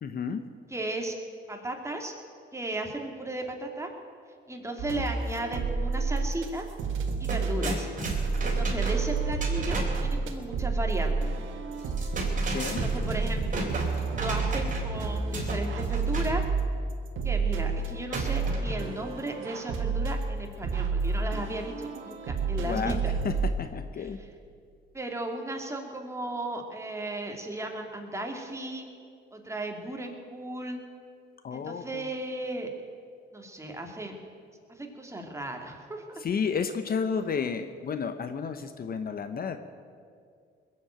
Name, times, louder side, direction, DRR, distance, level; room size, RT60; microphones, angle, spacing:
voice 1, 0.0-0.4 12.4-12.8 22.6-23.0 23.2-24.2 31.4-32.1 36.2-39.6, left 6 dB, 50° left, 9 dB, 0.9 m, -32 dB
voice 2, 0.7-1.2 1.5-2.1 2.5-3.9 4.5-6.7 7.2-7.9 8.4-11.3 12.7-13.7 14.1-16.4 17.2-23.1 24.0-24.1 24.9-28.9 29.3-30.8 31.5-32.7 33.3-34.1 34.7-36.0, right 1 dB, 15° right, 2 dB, 2.5 m, -35 dB
sound 1, 4.8-6.5 6.8-23.5, right 4 dB, 85° right, 1.6 m, -30 dB
sound 2, 6.6-6.7 7.0-10.1 11.8-15.0 15.3-16.4 18.1-19.0, right 2 dB, 40° right, 3.7 m, -35 dB
20.5 x 7.8 x 8.8 m, 2.2 s
cardioid pair, 90°, 20 cm